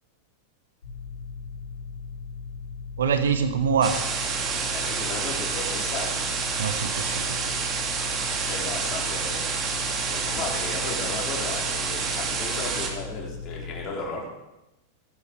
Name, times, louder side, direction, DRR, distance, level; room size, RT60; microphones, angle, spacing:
sound 1, 0.8-13.9, left 5 dB, 65° left, 5.5 m, -38 dB
voice 1, 3.0-4.2 6.6-7.7, right 6 dB, 65° right, 8 dB, 1.4 m, -25 dB
sound 2, 3.8-12.9, right 5 dB, 25° right, 2.3 m, -28 dB
voice 2, 4.7-6.2 8.4-9.8 10.0-14.3, left 3 dB, 30° left, -2 dB, 4.6 m, -35 dB
16.5 x 11.5 x 4.9 m, 0.95 s
figure-of-eight pair, 90°, 0 cm